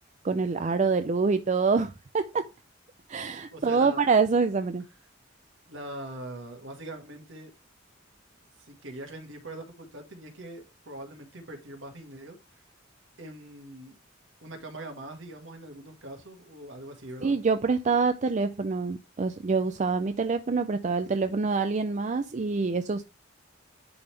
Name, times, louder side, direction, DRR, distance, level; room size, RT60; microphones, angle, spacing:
voice 1, 0.2-2.5 3.1-4.8 17.2-23.0, right 4 dB, 35° right, 0.4 m, -26 dB
voice 2, 3.5-4.0 5.7-7.5 8.6-12.7 13.2-14.0 14.4-17.3, right 1 dB, 65° right, 1.9 m, -42 dB
10.5 x 3.6 x 3.3 m
head